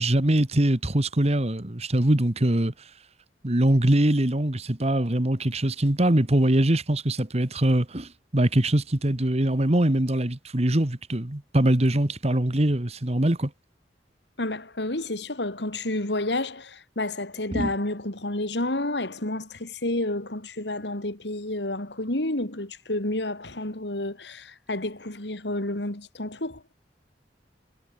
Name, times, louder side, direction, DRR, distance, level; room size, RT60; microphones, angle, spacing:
voice 1, 0.0-2.7 3.4-13.5 17.5-17.7, right 1 dB, 35° right, 1.6 m, -23 dB
voice 2, 14.4-26.6, left 1 dB, 75° left, 3.3 m, -30 dB
head